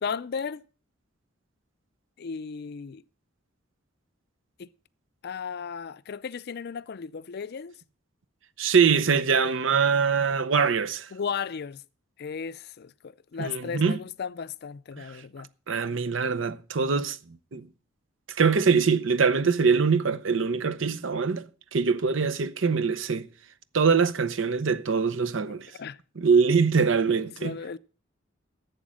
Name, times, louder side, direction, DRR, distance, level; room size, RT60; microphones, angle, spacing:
voice 1, 0.0-0.6 2.2-3.0 4.6-4.7 5.2-7.7 11.1-11.8 12.2-15.5 25.5-26.0 27.1-27.8, left 6 dB, 55° left, 0.4 m, -35 dB
voice 2, 8.6-11.1 13.4-14.0 15.0-15.1 15.7-17.2 17.5-17.7 18.3-23.3 23.7-25.7 26.2-27.6, right 5 dB, 70° right, 0.7 m, -23 dB
11.5 x 7.9 x 6.2 m
head